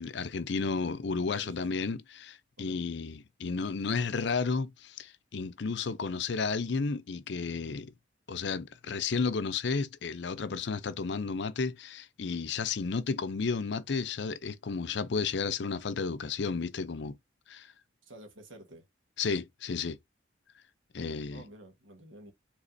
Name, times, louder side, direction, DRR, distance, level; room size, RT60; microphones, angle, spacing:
voice 1, 0.0-7.9 8.3-17.2 17.5-17.7 19.2-20.0 20.9-21.4, left 4 dB, 65° left, 0.5 m, -32 dB
voice 2, 1.3-1.7 2.6-2.8 18.0-18.9 21.3-22.3, right 1 dB, 85° right, 1.5 m, -51 dB
5.1 x 3.6 x 2.6 m
head